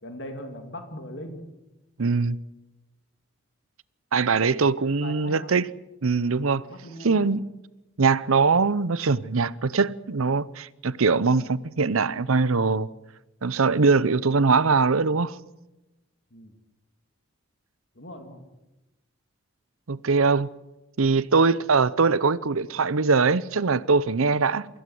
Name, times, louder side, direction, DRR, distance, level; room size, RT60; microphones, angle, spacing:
voice 1, 0.0-1.4 5.0-5.5 6.7-7.2 16.3-16.5 17.9-18.5, left 1 dB, 55° left, 2.3 m, -39 dB
voice 2, 2.0-2.4 4.1-5.7 6.0-6.6 7.0-7.4 8.0-12.9 13.4-15.4 19.9-20.5 21.0-24.7, right 4 dB, 80° right, 0.7 m, -22 dB
24.5 x 15.5 x 7.9 m
head